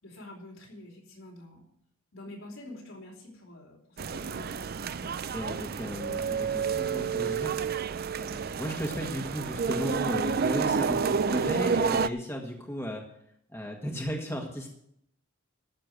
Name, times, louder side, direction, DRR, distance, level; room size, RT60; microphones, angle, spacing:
voice 1, 0.0-1.7 2.1-5.1, left 1 dB, 70° left, 0 dB, 4.3 m, -47 dB
sound 1, 4.0-12.1, right 6 dB, 45° right, 0.4 m, -29 dB
voice 2, 5.3-7.6 7.9-13.0 13.5-14.7, equal, 10° left, 1 dB, 1.5 m, -35 dB
13.5 x 6.7 x 7.7 m, 0.72 s
head